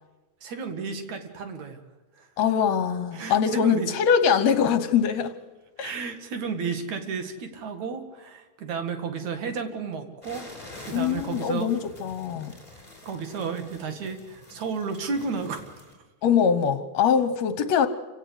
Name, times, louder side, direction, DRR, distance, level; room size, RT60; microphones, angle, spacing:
voice 1, 0.4-1.8 2.2-2.3 3.1-3.9 5.8-11.7 12.8-15.9, right 5 dB, 65° right, 7 dB, 3.2 m, -33 dB
voice 2, 2.4-5.3 5.8-5.9 10.9-12.5 16.2-17.9, left 7 dB, 65° left, 11 dB, 2.1 m, -23 dB
sound 1, 10.2-15.9, left 2 dB, 10° left, 5.2 m, -46 dB
28.0 x 17.0 x 8.1 m, 1.2 s
omnidirectional pair, 3.5 m